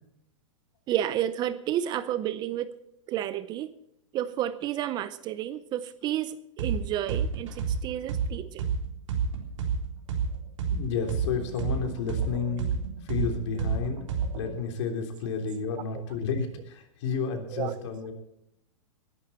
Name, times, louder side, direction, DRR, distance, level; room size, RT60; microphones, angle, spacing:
voice 1, 0.9-2.7 3.1-3.7 4.1-8.7 15.9-16.0 17.5-17.7, right 11 dB, 25° right, 15 dB, 0.5 m, -31 dB
sound 1, 6.6-6.8 7.1-10.8 11.1-14.5, right 6 dB, 65° right, 3.7 m, -29 dB
voice 2, 10.7-12.6 13.0-14.0 14.3-18.1, left 5 dB, 60° left, 4 dB, 3.4 m, -31 dB
20.5 x 11.5 x 4.3 m, 0.80 s
hypercardioid pair, 145°, 17 cm